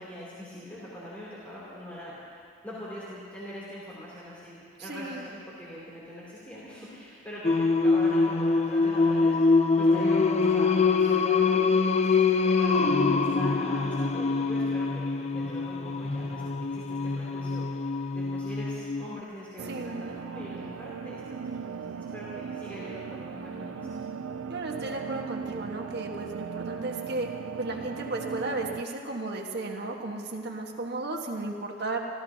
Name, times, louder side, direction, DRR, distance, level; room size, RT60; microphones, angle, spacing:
voice 1, 0.0-24.0, equal, 10° left, -9 dB, 3.0 m, -43 dB
voice 2, 4.9-5.3 19.7-20.0 24.5-27.3 27.6-32.0, right 2 dB, 60° right, 1 dB, 1.5 m, -34 dB
Singing, 7.4-19.2, left 4 dB, 35° left, 0.5 m, -24 dB
sound 1, 19.6-28.8, right 6 dB, 80° right, 0.5 m, -38 dB
28.5 x 14.0 x 2.8 m, 2.3 s
head